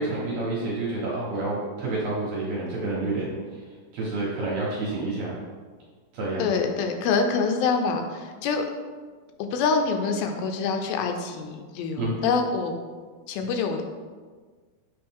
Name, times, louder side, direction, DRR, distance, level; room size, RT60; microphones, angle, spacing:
voice 1, 0.0-3.6 3.9-5.4 6.1-6.5 12.0-12.2, right 2 dB, 60° right, -6 dB, 2.1 m, -29 dB
voice 2, 6.4-8.7 9.4-12.7 13.3-13.8, left 5 dB, 85° left, 5 dB, 2.4 m, -25 dB
7.7 x 3.7 x 3.5 m, 1.5 s
omnidirectional pair, 4.2 m